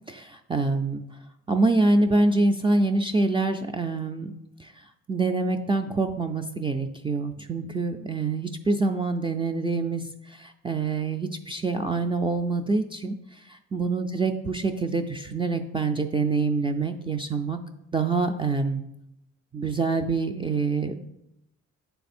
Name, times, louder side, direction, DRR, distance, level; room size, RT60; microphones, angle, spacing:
voice 1, 0.1-1.0 1.5-4.3 4.6-17.6 17.9-18.8 19.5-21.0, right 3 dB, 20° right, 5 dB, 0.3 m, -26 dB
7.7 x 3.4 x 4.2 m, 0.83 s
cardioid pair, 90°, 30 cm